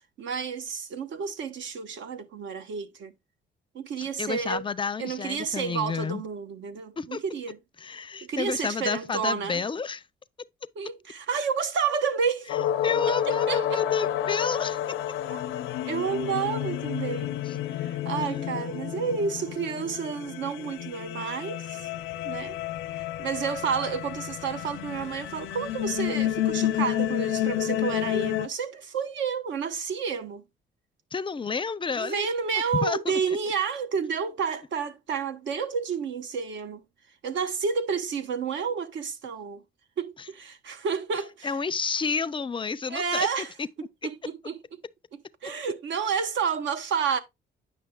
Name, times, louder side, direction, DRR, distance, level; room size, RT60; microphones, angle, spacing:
voice 1, 0.2-3.1 3.7-4.6 5.0-7.6 8.2-9.6 10.8-12.5 13.1-13.8 15.3-15.4 15.9-21.8 22.2-22.6 23.2-30.4 31.9-36.8 37.2-39.6 40.0-41.5 42.9-43.5 44.0-44.6 45.4-47.2, right 6 dB, 70° right, 1.0 m, -30 dB
voice 2, 4.0-6.2 7.0-7.2 7.8-10.0 12.8-14.8 17.5-17.6 18.2-18.6 31.1-32.3 32.7-33.4 41.4-43.3 43.6-43.7, left 5 dB, 25° left, 0.5 m, -30 dB
sound 1, 12.5-28.5, left 11 dB, 90° left, 0.6 m, -30 dB
9.3 x 5.9 x 2.3 m
cardioid pair, 90°, 20 cm